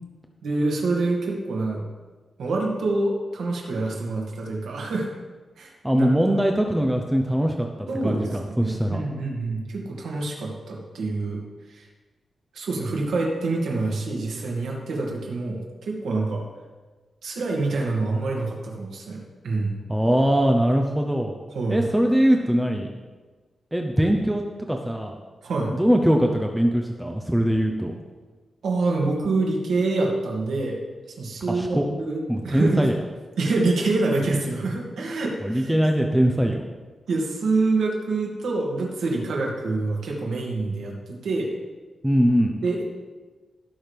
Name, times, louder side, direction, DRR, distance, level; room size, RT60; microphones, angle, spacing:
voice 1, 0.4-1.9 2.4-5.1 5.6-6.1 7.9-11.4 11.7-11.9 12.5-16.4 17.2-19.7 21.5-21.8 25.4-25.7 28.6-30.8 31.2-32.9 33.4-35.8 37.1-41.5 42.6-42.8, right 3 dB, 90° right, -1 dB, 2.3 m, -26 dB
voice 2, 5.8-9.0 19.9-21.3 21.7-22.9 23.7-25.2 25.7-27.9 31.5-31.9 32.3-32.9 35.4-36.6 42.0-42.5, equal, 5° right, 3 dB, 0.7 m, -21 dB
17.5 x 6.2 x 3.5 m, 1.3 s
wide cardioid pair, 110°, 0 cm